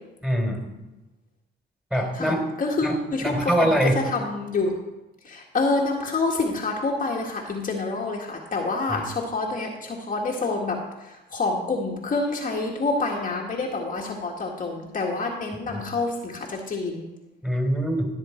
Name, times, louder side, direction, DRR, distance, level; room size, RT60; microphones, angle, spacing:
voice 1, 0.2-0.6 1.9-2.5 2.8-4.0 8.9-9.0 15.7-15.8 17.4-18.1, equal, 5° right, 1 dB, 3.6 m, -24 dB
voice 2, 2.1-3.8 4.0-4.8 5.3-10.8 11.3-17.0, left 3 dB, 40° left, -1 dB, 1.8 m, -27 dB
16.0 x 7.3 x 4.5 m, 1.0 s
cardioid pair, 90°, 20 cm